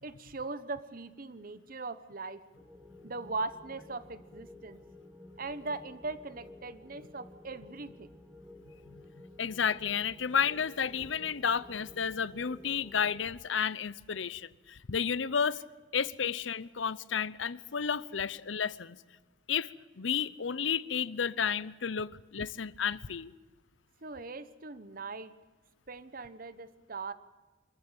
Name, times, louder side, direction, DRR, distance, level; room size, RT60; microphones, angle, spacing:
voice 1, 0.0-2.4 3.0-4.8 5.4-8.1 24.0-25.3 25.9-27.1, right 3 dB, 50° right, 1.1 m, -40 dB
sound 1, 2.6-13.2, left 2 dB, 5° right, 1.4 m, -53 dB
voice 2, 9.4-15.6 15.9-19.0 19.5-19.7 20.0-23.3, left 7 dB, 80° left, 0.7 m, -32 dB
25.0 x 14.5 x 8.9 m
head